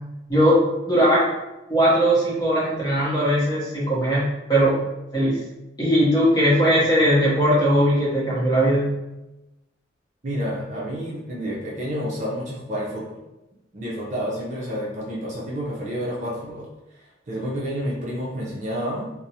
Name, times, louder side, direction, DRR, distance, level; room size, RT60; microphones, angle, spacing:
voice 1, 0.3-0.6 0.9-1.3 1.7-4.8 5.1-5.4 5.8-8.9, equal, 20° left, -7 dB, 0.8 m, -19 dB
voice 2, 10.2-13.1 13.7-16.7 17.3-19.1, equal, 40° right, -5 dB, 0.5 m, -29 dB
2.4 x 2.0 x 2.8 m, 1.0 s
head